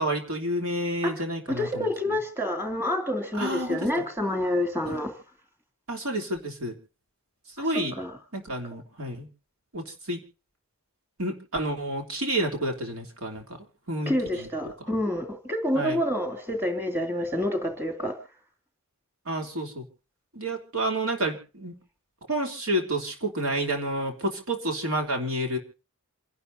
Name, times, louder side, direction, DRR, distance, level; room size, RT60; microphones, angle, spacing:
voice 1, 0.0-1.9 3.3-4.0 4.9-5.0 5.9-6.7 7.6-7.9 8.3-9.3 9.7-10.2 11.2-13.6 13.9-14.5 14.8-14.9 15.7-16.0 19.2-19.8 20.3-21.7 22.3-25.6, right 1 dB, 80° right, 3 dB, 3.1 m, -30 dB
voice 2, 1.5-5.1 7.6-8.1 14.1-18.2, left 1 dB, 10° right, 5 dB, 2.7 m, -28 dB
28.0 x 11.5 x 2.7 m, 0.36 s
head